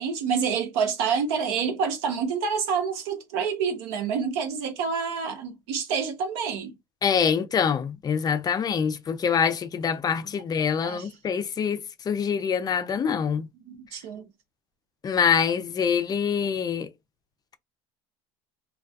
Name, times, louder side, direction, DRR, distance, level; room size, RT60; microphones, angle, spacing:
voice 1, 0.0-6.7 10.8-11.1 13.1-13.2 13.6-14.3, right 6 dB, 75° right, 0.8 m, -28 dB
voice 2, 7.0-11.8 12.1-13.5 15.0-16.9, left 7 dB, 30° left, 0.4 m, -25 dB
2.3 x 2.2 x 2.5 m
supercardioid pair, 90°, 14 cm